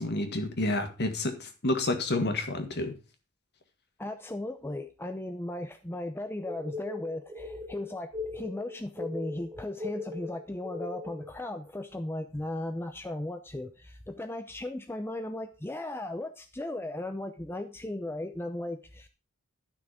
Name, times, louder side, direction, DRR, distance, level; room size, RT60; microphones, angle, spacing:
voice 1, 0.0-3.0, left 2 dB, 50° left, 7 dB, 1.8 m, -29 dB
voice 2, 4.0-19.1, left 1 dB, 10° left, 7 dB, 0.6 m, -36 dB
sound 1, 6.5-11.3, left 3 dB, 20° right, 0.8 m, -39 dB
12.0 x 6.1 x 4.9 m, 0.33 s
head